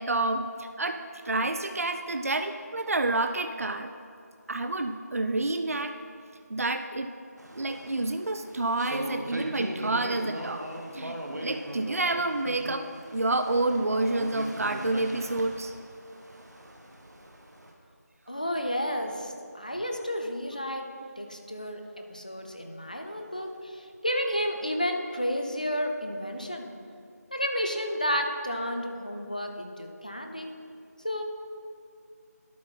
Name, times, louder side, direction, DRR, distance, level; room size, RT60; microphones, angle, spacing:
voice 1, 0.0-3.9 4.5-5.9 6.5-7.1 7.5-10.6 10.9-12.9 13.1-15.7, right 2 dB, 55° right, 8 dB, 0.4 m, -29 dB
sound 1, 7.4-17.7, right 1 dB, 75° right, 1.1 m, -39 dB
voice 2, 18.3-20.8 21.2-26.7 27.3-30.5 31.0-31.2, equal, 25° left, 4 dB, 0.5 m, -31 dB
11.5 x 4.3 x 4.2 m, 2.3 s
figure-of-eight pair, 175°, 9 cm